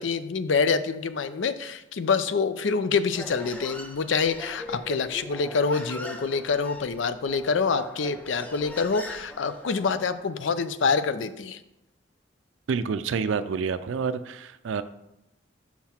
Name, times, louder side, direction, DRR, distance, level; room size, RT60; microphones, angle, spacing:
voice 1, 0.0-11.6, left 5 dB, 70° left, 12 dB, 0.5 m, -26 dB
Human voice, 3.1-10.2, left 1 dB, 10° left, 0.6 m, -41 dB
voice 2, 12.7-14.8, right 5 dB, 75° right, 12 dB, 0.4 m, -28 dB
6.0 x 5.7 x 4.3 m, 0.89 s
head